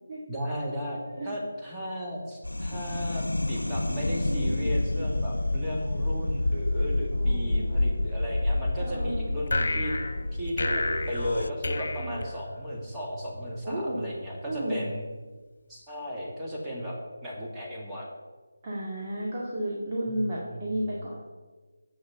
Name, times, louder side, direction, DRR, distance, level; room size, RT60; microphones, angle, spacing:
voice 1, 0.3-1.0 1.2-9.9 10.3-15.0 15.7-17.0 17.2-18.1 20.1-20.9, equal, 5° right, -6 dB, 2.0 m, -35 dB
sound 1, 2.4-11.5, left 2 dB, 85° left, 0.4 m, -29 dB
voice 2, 4.3-4.7 7.1-8.0 8.8-9.3 12.0-12.2 13.6-14.0 14.5-14.8 18.6-21.2, right 1 dB, 30° right, -6 dB, 2.1 m, -33 dB
sound 2, 9.5-12.9, left 2 dB, 55° left, 1.3 m, -31 dB
8.2 x 6.3 x 7.0 m, 1.3 s
figure-of-eight pair, 160°, 0 cm